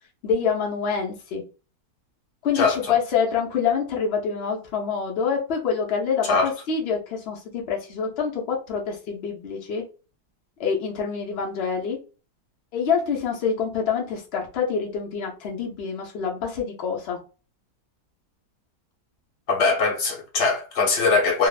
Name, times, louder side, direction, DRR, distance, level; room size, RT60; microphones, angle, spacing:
voice 1, 0.2-1.4 2.4-9.8 10.6-12.0 12.7-17.2, left 6 dB, 75° left, 0.5 m, -26 dB
voice 2, 2.5-2.9 6.2-6.5 19.5-21.5, left 4 dB, 55° left, 0.9 m, -21 dB
2.9 x 2.0 x 2.3 m
omnidirectional pair, 1.9 m